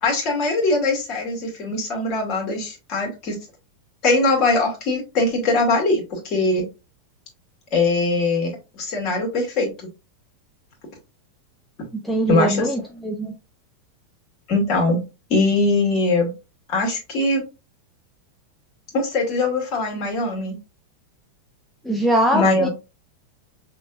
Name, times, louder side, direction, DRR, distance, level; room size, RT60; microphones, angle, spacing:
voice 1, 0.0-3.4 4.0-6.7 7.7-9.9 12.3-12.7 14.5-15.0 15.3-16.3 16.7-17.4 18.9-20.6 22.3-22.7, left 2 dB, 40° left, 1 dB, 2.2 m, -21 dB
voice 2, 11.9-13.4 21.8-22.7, right 1 dB, ahead, 1 dB, 0.6 m, -22 dB
6.2 x 3.1 x 2.4 m, 0.28 s
figure-of-eight pair, 90°, 0 cm